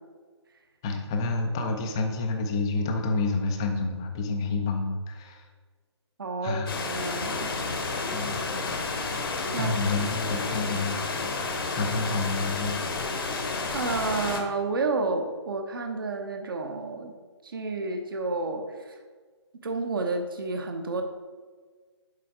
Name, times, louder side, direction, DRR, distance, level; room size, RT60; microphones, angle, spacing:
voice 1, 0.8-5.5 6.4-6.7 8.1-8.4 9.6-11.4 11.7-12.8, left 3 dB, 10° left, 4 dB, 0.3 m, -29 dB
voice 2, 6.2-7.5 9.5-9.7 13.7-17.1 17.4-19.0 19.6-21.0, right 3 dB, 50° right, 4 dB, 0.7 m, -30 dB
sound 1, 6.7-14.4, left 3 dB, 50° left, 0.9 m, -31 dB
7.5 x 4.2 x 4.6 m, 1.5 s
figure-of-eight pair, 145°, 15 cm